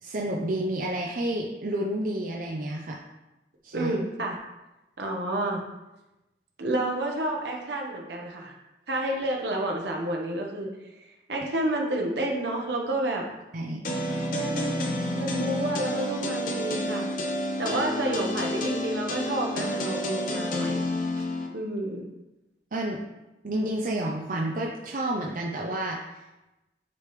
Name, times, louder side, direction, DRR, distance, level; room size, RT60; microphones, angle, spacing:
voice 1, 0.0-3.0 3.6-4.0 13.5-13.8 22.7-23.0 23.4-26.0, right 1 dB, 50° right, -1 dB, 0.5 m, -30 dB
voice 2, 3.7-4.4 5.0-5.6 6.6-8.6 8.9-10.7 11.3-13.2 14.3-14.9 15.1-17.0 17.6-20.8 21.2-21.3 21.5-22.0, right 1 dB, 75° right, 0 dB, 1.1 m, -30 dB
sound 1, 13.8-21.5, left 1 dB, 50° left, 0.8 m, -29 dB
9.7 x 3.4 x 3.2 m, 1.0 s
head